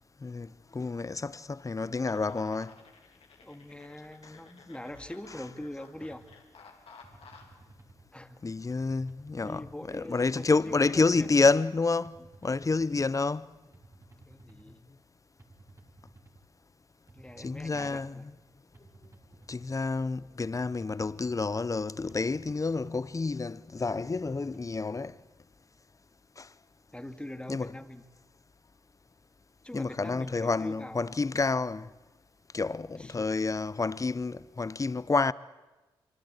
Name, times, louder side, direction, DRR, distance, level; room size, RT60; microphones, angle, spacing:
voice 1, 0.2-2.7 8.4-9.7 9.9-12.2 12.4-13.5 17.4-18.3 19.5-25.2 26.4-26.5 27.5-27.7 29.7-31.9 32.5-35.3, left 3 dB, 30° left, 0.9 m, -29 dB
sound 1, 2.1-7.6, left 4 dB, 70° left, 3.6 m, -55 dB
voice 2, 3.4-6.3 8.1-8.4 9.4-11.3 14.2-14.9 17.1-18.4 26.9-28.0 29.6-31.1 32.9-33.3, left 1 dB, 10° left, 2.4 m, -43 dB
sound 2, 5.9-6.4 7.0-8.1 8.7-9.7 10.4-11.4 12.0-13.1 13.7-14.8 15.4-16.4 17.1-18.1 18.7-19.8 20.4-21.5 22.1-23.1 23.8-24.8, right 2 dB, 30° right, 3.5 m, -55 dB
25.0 x 25.0 x 8.3 m
supercardioid pair, 40°, 10 cm